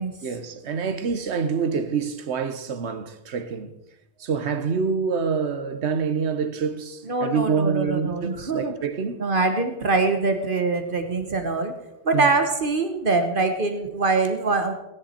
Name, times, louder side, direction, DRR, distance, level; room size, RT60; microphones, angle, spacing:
voice 1, 0.2-3.8 4.2-9.2 12.1-12.3, right 5 dB, 85° right, 1.2 m, -26 dB
voice 2, 7.1-8.7 9.2-11.8 12.0-14.7, right 3 dB, 55° right, 1.2 m, -23 dB
17.0 x 10.5 x 4.3 m
omnidirectional pair, 1.1 m